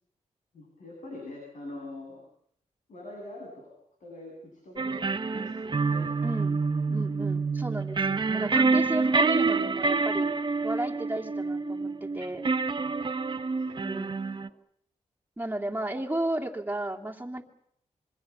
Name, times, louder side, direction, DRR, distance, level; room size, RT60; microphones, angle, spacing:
voice 1, 0.5-2.2 2.9-3.7 4.0-6.1 6.9-7.1 12.8-14.0 14.3-14.4, left 2 dB, 80° left, -1 dB, 7.5 m, -44 dB
sound 1, 4.8-14.5, right 4 dB, 40° right, 1.1 m, -27 dB
voice 2, 6.2-6.6 6.9-10.2 10.6-12.4 13.8-14.2 15.4-17.4, right 1 dB, 15° right, 1 dB, 2.9 m, -33 dB
26.0 x 23.5 x 7.1 m, 0.69 s
cardioid pair, 85°, 13 cm